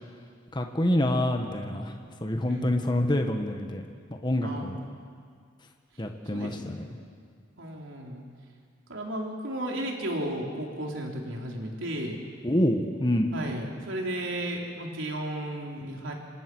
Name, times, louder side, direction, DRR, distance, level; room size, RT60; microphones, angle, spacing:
voice 1, 0.5-1.9 2.2-3.8 4.2-4.8 6.0-6.9 12.4-13.3, left 1 dB, 25° left, 4 dB, 1.5 m, -26 dB
voice 2, 2.5-2.8 4.4-4.8 6.3-6.5 6.9-7.1 7.6-8.2 8.9-12.2 13.3-16.1, right 1 dB, 85° right, 0 dB, 3.8 m, -34 dB
26.5 x 26.0 x 6.3 m, 2.1 s
head